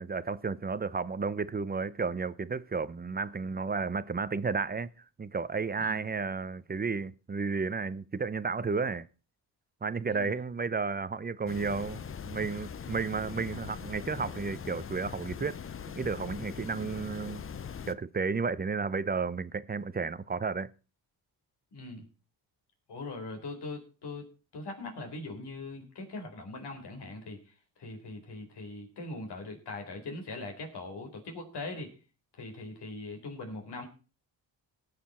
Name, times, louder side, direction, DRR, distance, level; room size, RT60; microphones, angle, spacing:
voice 1, 0.0-4.9 5.2-9.1 9.8-15.6 16.0-17.4 17.9-20.7, right 4 dB, 20° right, 0.7 m, -32 dB
sound 1, 11.5-17.9, left 7 dB, 30° left, 0.7 m, -41 dB
voice 2, 21.7-22.0 22.9-27.4 27.8-31.9 32.4-33.9, left 2 dB, 65° left, 4.3 m, -41 dB
19.0 x 6.8 x 4.3 m
cardioid pair, 75°, 44 cm